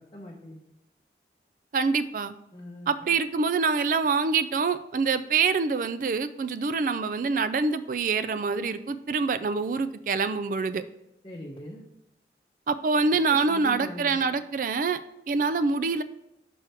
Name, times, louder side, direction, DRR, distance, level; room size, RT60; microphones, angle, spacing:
voice 1, 0.1-0.6 2.5-2.9 11.2-11.8 13.5-14.3, left 1 dB, 30° left, -3 dB, 0.8 m, -41 dB
voice 2, 1.7-2.3 2.9-10.8 12.7-15.0 15.3-16.0, right 4 dB, 50° right, 13 dB, 0.3 m, -25 dB
6.1 x 4.8 x 4.4 m, 0.86 s
head